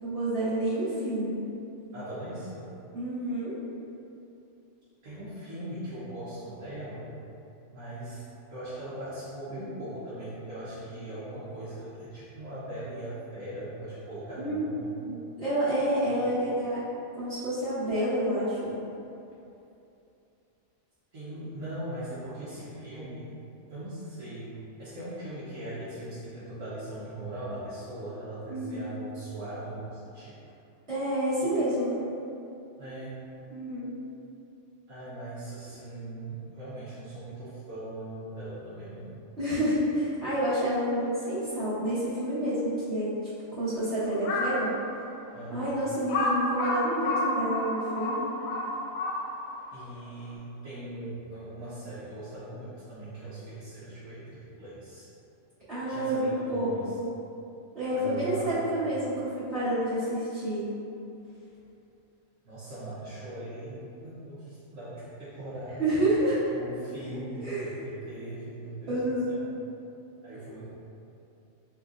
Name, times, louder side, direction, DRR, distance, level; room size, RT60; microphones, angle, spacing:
voice 1, 0.0-1.4 2.9-3.5 14.4-14.6 15.0-16.8 17.2-18.7 28.5-28.8 30.9-32.0 33.5-33.9 39.4-43.1 43.5-44.7 45.5-48.3 55.7-56.7 57.0-57.1 57.7-60.7 65.8-66.4 67.4-67.7 68.9-69.3, right 1 dB, 45° right, -16 dB, 1.6 m, -29 dB
voice 2, 1.9-2.7 5.0-7.1 7.7-8.2 8.5-14.9 16.1-16.3 21.1-23.3 23.7-30.4 31.4-31.6 32.8-33.2 34.9-39.2 45.3-45.7 49.7-55.1 55.8-56.9 57.9-58.7 62.4-66.0 66.5-69.0 69.3-69.5 70.2-70.6, right 1 dB, 70° right, -13 dB, 1.3 m, -40 dB
Crow, 44.1-44.6 45.2-45.3 46.1-49.5, left 2 dB, 85° left, 1.0 m, -29 dB
4.2 x 3.0 x 2.4 m, 2.8 s
omnidirectional pair, 1.4 m